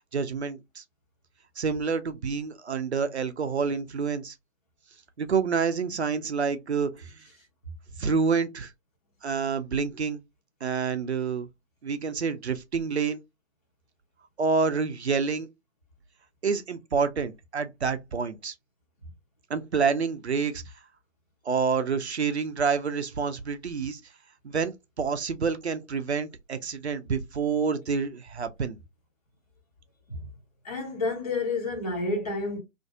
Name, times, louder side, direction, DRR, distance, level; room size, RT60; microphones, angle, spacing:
voice 1, 0.1-0.8 1.6-4.3 5.2-7.2 8.0-8.7 9.2-10.2 10.6-11.5 11.8-13.2 14.4-15.5 16.4-18.5 19.5-20.6 21.5-24.0 24.4-28.8, right 5 dB, 55° right, 0.5 m, -28 dB
voice 2, 30.6-32.6, left 3 dB, 30° left, 0.6 m, -29 dB
2.5 x 2.3 x 2.7 m
figure-of-eight pair, 150°, 40 cm